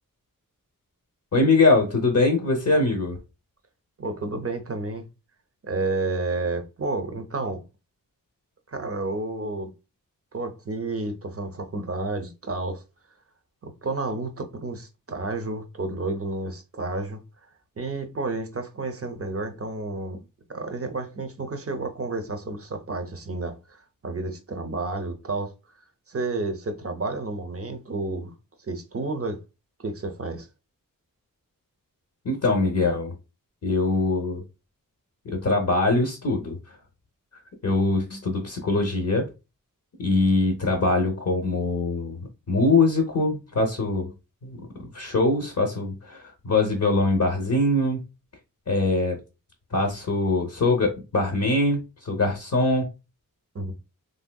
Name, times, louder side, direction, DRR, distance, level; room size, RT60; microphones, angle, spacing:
voice 1, 1.3-3.2 32.2-33.1 33.6-34.4 35.2-36.6 37.6-39.3 40.0-44.1 44.4-44.6 44.9-48.0 48.7-49.2 49.7-52.9, left 2 dB, 55° left, 0.7 m, -23 dB
voice 2, 4.0-5.1 5.6-7.6 8.7-9.7 10.3-12.8 13.6-17.2 17.8-25.5 26.1-28.3 28.7-29.4 29.8-30.5 53.5-53.7, right 3 dB, 40° right, 0.6 m, -31 dB
3.2 x 2.6 x 2.2 m
wide cardioid pair, 75°, 34 cm